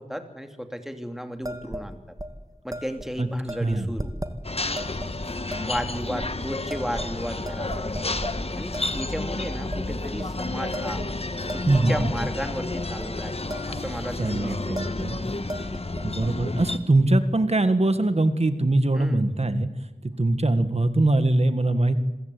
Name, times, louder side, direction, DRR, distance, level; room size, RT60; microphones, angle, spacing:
voice 1, 0.0-2.0 2.6-4.1 5.6-8.0 8.6-11.0 11.5-13.4 13.7-14.8 18.9-19.2, equal, 5° right, 6 dB, 2.6 m, -34 dB
sound 1, 1.4-1.9 2.2-2.3 2.7-3.1 3.5-4.3 4.8-5.1 5.5-5.8 6.2-6.3 6.7-7.2 7.4-8.3 8.7-9.1 9.4-9.8 10.2-10.3 10.7-12.3 12.8-13.1 13.3-13.8 14.1-14.3 14.8-15.1 15.4-16.3, right 1 dB, 25° right, 2.0 m, -36 dB
sound 2, 4.4-16.8, left 2 dB, 45° left, 1.3 m, -31 dB
voice 2, 11.7-12.1 14.2-15.2 16.0-19.7 20.2-22.0, right 2 dB, 45° right, 11 dB, 1.6 m, -22 dB
27.0 x 16.0 x 8.4 m, 1.1 s
wide cardioid pair, 65°, 14 cm